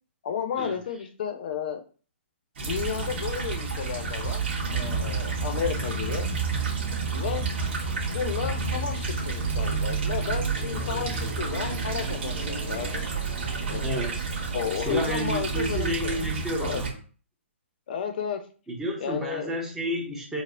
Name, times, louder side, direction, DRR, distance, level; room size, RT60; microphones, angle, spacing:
voice 1, 0.2-1.8 2.6-4.4 4.7-6.3 7.1-7.4 8.1-13.1 13.6-13.9 14.5-16.2 16.6-16.8 17.9-18.4 19.0-19.5, left 7 dB, 45° left, 6 dB, 0.5 m, -32 dB
sound 1, 2.6-16.9, right 4 dB, 55° right, 1.3 m, -30 dB
Fixed-wing aircraft airplane, 5.5-15.7, right 3 dB, 35° right, 1.4 m, -41 dB
voice 2, 13.7-14.2 14.8-16.9 18.7-20.4, equal, 5° right, -2 dB, 0.5 m, -31 dB
4.1 x 2.0 x 2.5 m, 0.39 s
hypercardioid pair, 165°, 7 cm